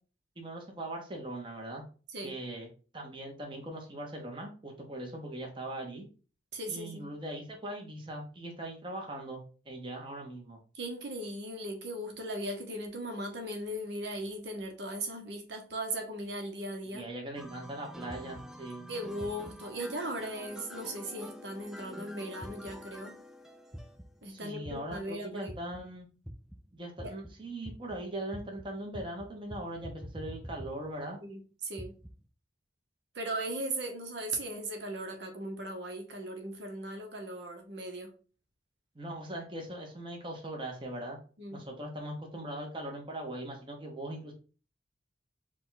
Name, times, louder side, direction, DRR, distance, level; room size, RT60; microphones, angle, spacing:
voice 1, 0.4-1.8 2.2-2.7 2.9-6.1 6.7-10.6 16.9-18.9 24.3-26.1 26.7-31.2 38.9-41.2 41.5-44.3, right 1 dB, 25° right, 1 dB, 0.8 m, -40 dB
voice 2, 6.5-7.1 10.7-17.0 18.9-23.2 24.2-25.5 27.0-27.1 31.2-31.9 33.1-38.1 41.4-41.6, right 1 dB, 70° right, 4 dB, 0.9 m, -38 dB
sound 1, 17.3-24.2 24.7-25.1 25.5-26.0 26.2-31.1 31.8-32.2, equal, 5° right, 0.3 m, -46 dB
4.8 x 2.3 x 3.9 m, 0.37 s
head